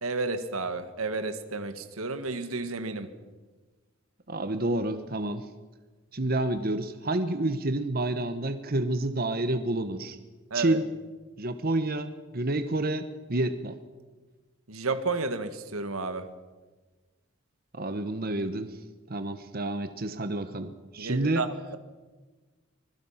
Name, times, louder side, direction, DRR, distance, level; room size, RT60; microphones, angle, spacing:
voice 1, 0.0-3.1 10.5-10.8 14.7-16.3 21.0-21.8, right 3 dB, 90° right, 10 dB, 1.7 m, -32 dB
voice 2, 4.3-5.4 6.1-10.2 10.5-10.9 11.4-13.8 17.7-18.8 19.1-21.5, right 2 dB, 45° right, 10 dB, 1.1 m, -29 dB
25.5 x 20.5 x 5.8 m, 1.3 s
head